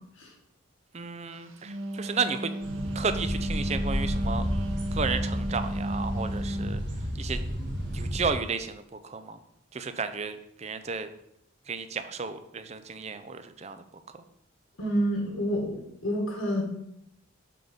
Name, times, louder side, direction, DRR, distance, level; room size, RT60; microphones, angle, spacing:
voice 1, 0.9-2.5 2.9-4.5 4.9-6.8 7.2-7.4 7.9-9.4 9.7-11.1 11.7-13.8, right 5 dB, 30° right, 10 dB, 0.5 m, -33 dB
Wind instrument woodwind instrument, 1.5-6.8, equal, 75° right, 0.8 m, -34 dB
sound 1, 2.6-8.3, equal, 55° right, 2.0 m, -32 dB
voice 2, 14.8-16.6, equal, 80° left, 0 dB, 1.7 m, -28 dB
7.5 x 4.0 x 5.3 m, 0.76 s
head